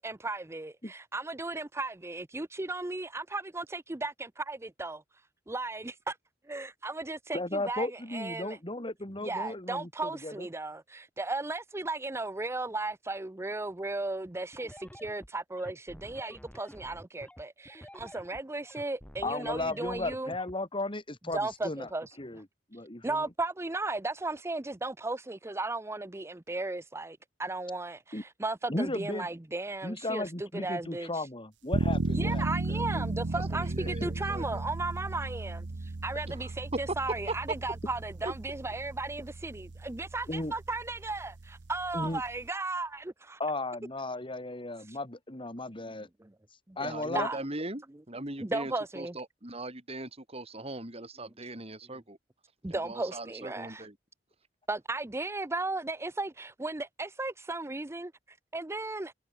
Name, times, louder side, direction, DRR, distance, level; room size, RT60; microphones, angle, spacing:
voice 1, 0.0-6.2 6.5-8.6 9.2-20.3 21.3-22.4 22.7-31.3 32.1-43.4 44.8-45.0 46.2-46.3 46.7-47.4 48.4-49.2 51.2-51.5 52.6-53.9 54.7-59.1, right 2 dB, 15° right, 0.6 m, -36 dB
voice 2, 7.3-10.5 19.2-21.9 22.2-22.4 22.7-23.3 28.1-28.2 28.7-29.3 29.8-33.0 34.0-34.1 40.3-40.5 41.9-42.2 43.4-46.1 46.8-47.3, left 2 dB, 30° left, 3.3 m, -35 dB
sound 1, 14.5-20.5, equal, 5° left, 4.9 m, -50 dB
sound 2, 31.7-42.5, right 2 dB, 85° right, 0.8 m, -35 dB
voice 3, 33.5-34.6 36.3-36.4 38.2-38.3 46.8-52.2 52.7-53.9, right 1 dB, 35° right, 6.7 m, -40 dB
head